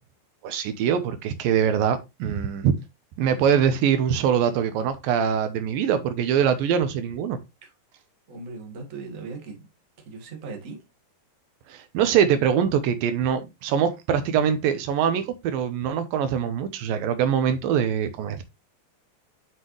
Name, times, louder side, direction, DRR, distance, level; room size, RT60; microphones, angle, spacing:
voice 1, 0.4-2.7 3.2-7.4 11.7-18.4, right 8 dB, 80° right, 2.6 m, -23 dB
voice 2, 8.3-9.5 10.0-10.8, right 4 dB, 30° right, 1.6 m, -38 dB
7.9 x 5.7 x 3.2 m
omnidirectional pair, 4.1 m